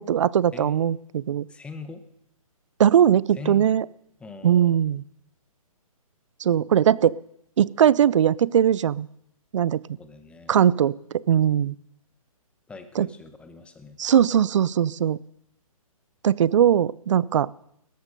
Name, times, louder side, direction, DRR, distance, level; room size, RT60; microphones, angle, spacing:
voice 1, 0.0-1.5 2.8-3.8 4.4-5.0 6.4-7.2 7.6-9.1 9.5-9.8 10.5-11.7 13.0-13.1 14.0-15.2 16.2-17.5, right 9 dB, 55° right, 23 dB, 0.5 m, -20 dB
voice 2, 1.5-2.0 3.3-3.7 4.2-4.8 10.0-10.6 12.7-14.0, left 5 dB, 5° left, 10 dB, 0.9 m, -41 dB
18.5 x 13.5 x 5.3 m, 0.73 s
hypercardioid pair, 150°, 19 cm